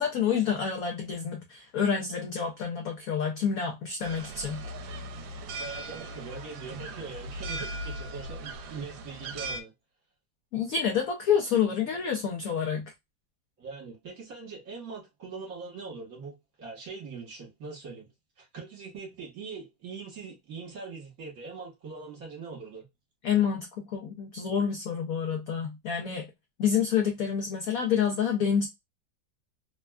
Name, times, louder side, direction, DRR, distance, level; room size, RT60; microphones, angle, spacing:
voice 1, 0.0-4.6 10.5-12.8 23.2-26.3 26.6-28.7, left 7 dB, 75° left, 0.8 m, -28 dB
sound 1, 4.0-9.6, right 1 dB, 75° right, 1.2 m, -38 dB
voice 2, 5.6-9.7 13.6-18.1 18.4-22.8, right 4 dB, 55° right, 1.4 m, -42 dB
3.3 x 2.2 x 2.2 m
omnidirectional pair, 2.1 m